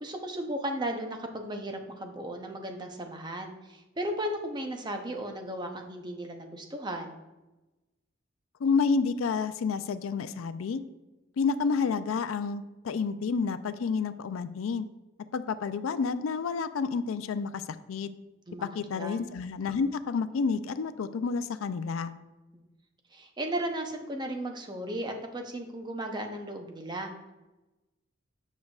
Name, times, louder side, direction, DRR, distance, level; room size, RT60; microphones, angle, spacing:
voice 1, 0.0-7.1 18.5-18.7 19.0-19.2 22.5-22.6 23.1-27.1, right 1 dB, 20° right, 4 dB, 0.7 m, -35 dB
voice 2, 8.6-10.8 11.4-14.9 15.3-17.6 17.9-18.1 18.6-22.1, left 5 dB, 90° left, 13 dB, 0.4 m, -29 dB
7.3 x 6.3 x 2.4 m, 1.1 s
head